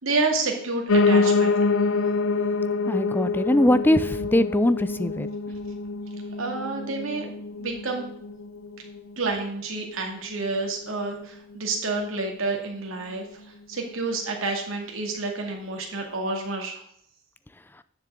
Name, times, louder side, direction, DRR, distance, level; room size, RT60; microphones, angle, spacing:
voice 1, 0.0-1.5 6.4-7.3 7.6-8.0 9.2-13.2 13.7-16.8, right 3 dB, 75° right, 1 dB, 2.2 m, -29 dB
Piano, 0.9-10.0 10.4-11.6 11.8-11.9 12.2-12.3 12.5-12.6 13.1-13.2, left 4 dB, 80° left, 0.6 m, -26 dB
voice 2, 2.9-5.3, left 1 dB, 10° left, 13 dB, 0.4 m, -21 dB
10.0 x 7.1 x 3.7 m, 0.66 s
head